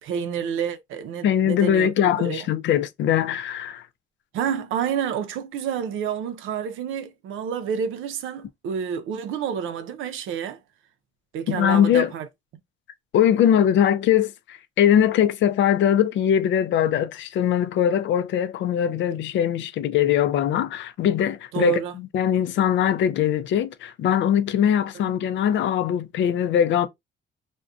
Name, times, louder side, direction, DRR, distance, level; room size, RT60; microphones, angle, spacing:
voice 1, 0.0-1.9 2.2-2.5 4.3-10.6 11.3-12.3 21.5-21.9, right 8 dB, 85° right, 0.5 m, -29 dB
voice 2, 1.2-3.8 11.5-12.1 13.1-26.9, left 9 dB, 70° left, 0.4 m, -21 dB
2.5 x 2.2 x 2.3 m
cardioid pair, 90°, 20 cm